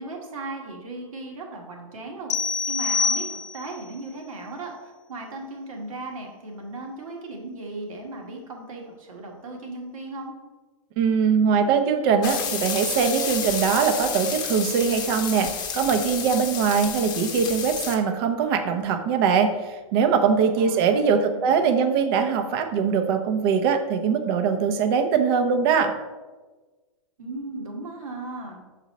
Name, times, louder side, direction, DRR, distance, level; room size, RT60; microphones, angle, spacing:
voice 1, 0.0-2.3 2.7-10.3 20.6-20.9 21.1-21.9 27.2-28.6, right 2 dB, 80° right, 1 dB, 1.5 m, -37 dB
sound 1, 2.3-3.8, left 5 dB, 70° left, 0.7 m, -26 dB
voice 2, 11.0-25.9, right 6 dB, 45° right, 7 dB, 0.7 m, -22 dB
sound 2, 12.2-18.0, left 7 dB, 25° left, 0.8 m, -31 dB
6.2 x 4.1 x 4.1 m, 1.3 s
hypercardioid pair, 135°, 17 cm